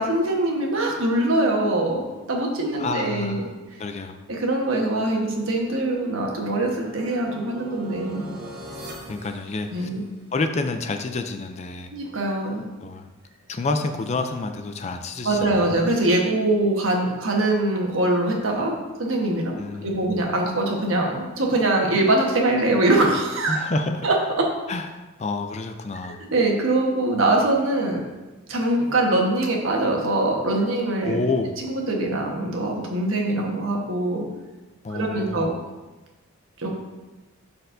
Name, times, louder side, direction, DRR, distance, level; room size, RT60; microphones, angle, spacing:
voice 1, 0.0-2.0 2.3-3.5 4.3-8.2 9.7-10.0 11.9-12.6 15.2-19.6 19.8-23.6 24.0-24.5 26.0-28.0 28.5-31.2 31.6-34.3 34.9-35.5 36.6-36.7, right 2 dB, 70° right, -1 dB, 1.3 m, -23 dB
voice 2, 2.8-3.5 3.8-4.2 9.1-9.9 10.3-11.9 12.8-13.1 13.5-15.8 19.6-20.1 23.5-24.1 24.7-26.2 31.0-31.6 34.8-35.5, left 3 dB, 30° left, 6 dB, 0.4 m, -29 dB
sound 1, 5.3-10.3, equal, 50° right, 1.1 m, -41 dB
12.0 x 4.3 x 2.6 m, 1.2 s
head